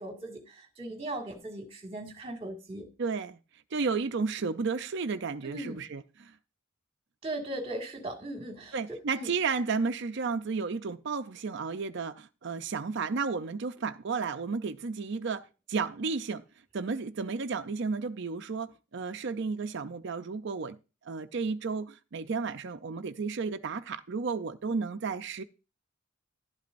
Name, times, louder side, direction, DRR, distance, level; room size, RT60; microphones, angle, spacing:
voice 1, 0.0-2.8 5.4-5.8 7.2-8.8 9.1-9.3, right 1 dB, 30° right, 2.0 m, -38 dB
voice 2, 3.0-3.4 3.7-6.3 8.7-16.4 16.7-20.8 21.0-25.4, right 4 dB, 60° right, 0.5 m, -33 dB
11.5 x 11.5 x 2.6 m
head